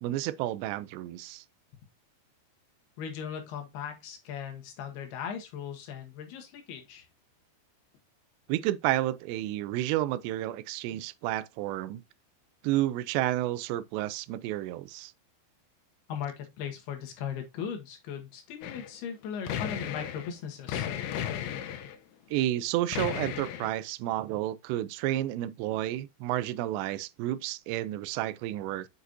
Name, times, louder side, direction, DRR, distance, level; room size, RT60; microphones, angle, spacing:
voice 1, 0.0-1.4 8.5-12.0 12.6-15.1 22.3-28.9, right 14 dB, 85° right, 2.7 m, -31 dB
voice 2, 3.0-7.1 16.1-20.9, left 8 dB, 70° left, 3.3 m, -38 dB
sound 1, 18.6-18.9 19.2-20.3 20.7-22.0 22.9-23.7, left 10 dB, 90° left, 3.2 m, -34 dB
8.0 x 6.3 x 2.7 m
omnidirectional pair, 5.0 m